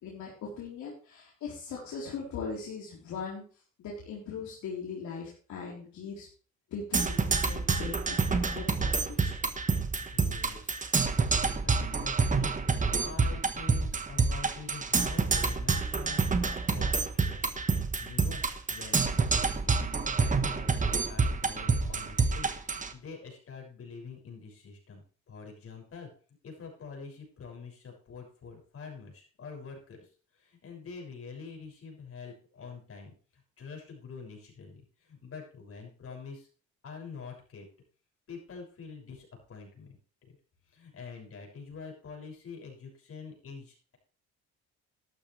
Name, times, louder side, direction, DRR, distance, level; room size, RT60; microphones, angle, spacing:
voice 1, 0.0-3.4 3.8-6.3 6.7-9.3, left 5 dB, 70° left, -4 dB, 3.9 m, -40 dB
Percussion, 6.9-22.9, right 4 dB, 25° right, 1.4 m, -28 dB
voice 2, 10.1-18.4 18.7-26.1 26.4-36.5 36.8-37.7 38.3-40.0 40.2-40.4 40.7-44.0, left 5 dB, 50° left, 0 dB, 6.4 m, -46 dB
13.0 x 12.0 x 3.3 m, 0.40 s
cardioid pair, 100°, 30 cm